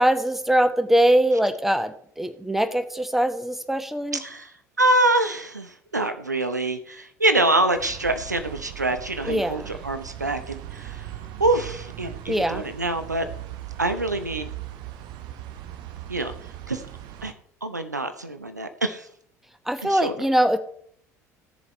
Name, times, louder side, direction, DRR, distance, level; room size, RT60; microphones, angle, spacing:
voice 1, 0.0-4.2 9.3-9.7 12.3-12.6 19.7-20.6, right 1 dB, 5° right, 10 dB, 1.2 m, -22 dB
voice 2, 4.2-11.1 11.4-13.3 13.8-14.5 16.1-16.3 16.7-16.8 17.2-17.3 17.6-19.1 19.8-20.1, right 2 dB, 90° right, 9 dB, 0.8 m, -25 dB
sound 1, 7.7-17.3, right 13 dB, 55° right, 1.0 m, -39 dB
15.5 x 7.1 x 4.3 m, 0.63 s
figure-of-eight pair, 60°, 9 cm